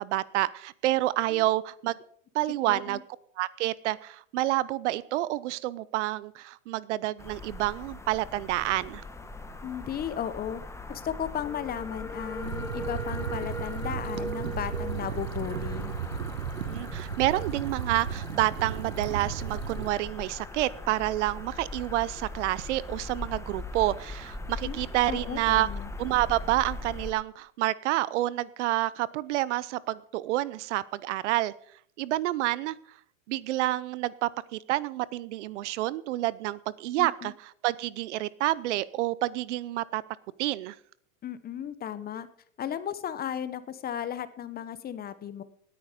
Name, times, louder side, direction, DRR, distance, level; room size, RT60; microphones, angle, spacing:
voice 1, 0.0-1.9 2.3-3.0 3.4-9.0 16.7-25.7 26.0-31.5 32.0-32.8 33.3-40.0 40.4-40.8, right 16 dB, 60° right, 20 dB, 0.7 m, -28 dB
voice 2, 2.7-3.0 9.6-10.6 10.9-15.9 24.6-25.9 37.0-37.3 41.2-42.3 42.6-45.4, left 9 dB, 25° left, 14 dB, 1.0 m, -35 dB
sound 1, 7.2-27.1, left 2 dB, 5° left, 1.2 m, -39 dB
sound 2, 12.4-19.9, right 8 dB, 90° right, 1.2 m, -35 dB
18.5 x 9.5 x 5.1 m, 0.63 s
hypercardioid pair, 115°, 39 cm